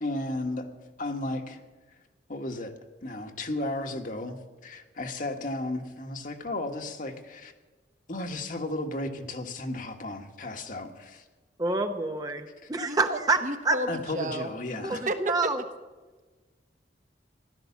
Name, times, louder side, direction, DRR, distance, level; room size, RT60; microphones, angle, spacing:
voice 1, 0.0-0.7 1.0-1.6 2.3-2.7 3.0-7.5 8.1-11.2 13.9-15.0, left 2 dB, 50° left, 5 dB, 1.5 m, -34 dB
voice 2, 11.6-13.8 14.7-15.6, right 3 dB, 20° right, 6 dB, 0.8 m, -28 dB
voice 3, 12.8-14.5 14.9-15.5, right 1 dB, 45° right, 7 dB, 1.3 m, -32 dB
16.0 x 12.0 x 7.2 m, 1.3 s
head